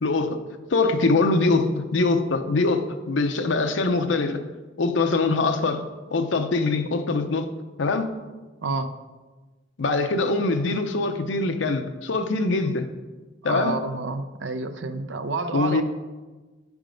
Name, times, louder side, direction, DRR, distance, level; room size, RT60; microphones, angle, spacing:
voice 1, 0.0-4.5 4.8-7.5 7.8-8.1 9.8-12.9 13.4-13.8 15.5-15.8, left 3 dB, 85° left, 6 dB, 0.6 m, -23 dB
voice 2, 8.6-8.9 10.2-10.4 13.4-15.8, right 3 dB, 80° right, 10 dB, 0.6 m, -29 dB
10.0 x 3.6 x 5.1 m, 1.2 s
head